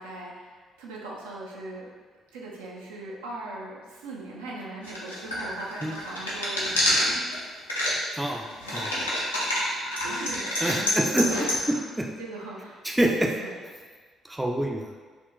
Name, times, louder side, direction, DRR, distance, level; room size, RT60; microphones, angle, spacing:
voice 1, 0.0-1.9 2.3-7.4 10.0-11.8 12.2-12.9 13.4-13.6, right 2 dB, 75° right, -4 dB, 0.4 m, -40 dB
sound 1, 4.8-7.4 7.7-7.9 8.3-11.6, left 1 dB, 85° left, 0.4 m, -27 dB
voice 2, 10.6-11.3 11.7-12.1 12.8-13.3 14.3-14.8, right 1 dB, 10° right, 1 dB, 0.4 m, -26 dB
3.6 x 2.2 x 2.5 m, 1.5 s
figure-of-eight pair, 45°, 0 cm